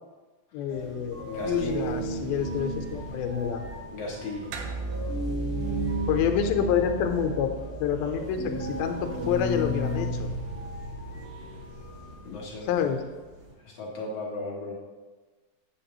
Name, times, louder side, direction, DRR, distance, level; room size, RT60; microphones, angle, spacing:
voice 1, 0.5-3.6 6.1-7.5 7.8-10.3 12.6-13.0, left 8 dB, 85° left, 5 dB, 2.5 m, -28 dB
sound 1, 0.7-13.5, equal, 50° right, 2.4 m, -34 dB
voice 2, 1.2-1.8 3.9-4.4 12.2-12.8 13.6-14.7, left 3 dB, 70° left, -4 dB, 1.5 m, -36 dB
sound 2, 4.5-9.3, right 3 dB, 85° right, 2.6 m, -36 dB
8.6 x 7.2 x 2.9 m, 1.3 s
omnidirectional pair, 4.3 m